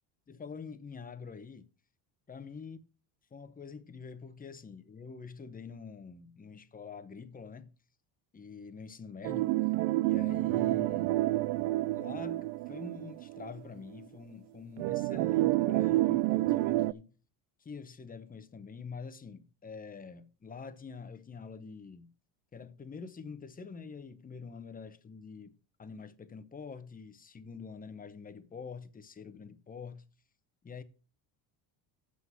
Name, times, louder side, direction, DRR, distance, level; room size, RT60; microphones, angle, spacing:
voice 1, 0.3-1.7 2.3-2.8 3.3-7.7 8.3-9.5 10.0-11.2 11.9-17.1 17.6-22.1 22.5-30.0 30.6-30.8, left 5 dB, 15° left, 0.9 m, -46 dB
sound 1, 9.2-13.6 14.0-14.1 14.8-16.9, right 18 dB, 80° right, 0.6 m, -29 dB
7.6 x 6.0 x 7.8 m
cardioid pair, 110°, 49 cm